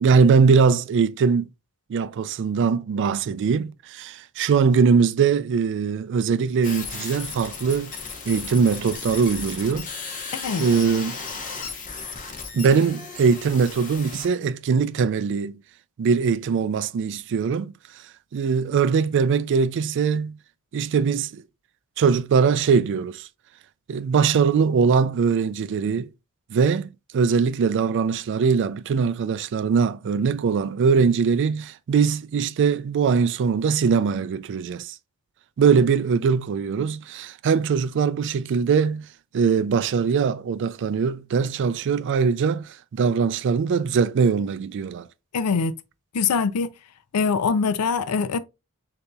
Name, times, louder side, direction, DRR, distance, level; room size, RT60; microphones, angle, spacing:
voice 1, 0.0-1.5 1.9-7.9 8.3-9.9 10.6-11.2 12.5-15.6 16.0-17.7 18.3-20.4 20.7-21.4 22.0-23.3 23.9-26.1 26.5-35.0 35.6-39.1 39.3-45.1, right 5 dB, 55° right, 0.3 m, -21 dB
sound 1, 6.6-14.3, left 5 dB, 35° left, 1.0 m, -35 dB
voice 2, 10.3-10.7 45.3-45.7 46.1-46.7 47.1-48.4, left 5 dB, 85° left, 0.5 m, -23 dB
6.6 x 2.8 x 2.3 m
head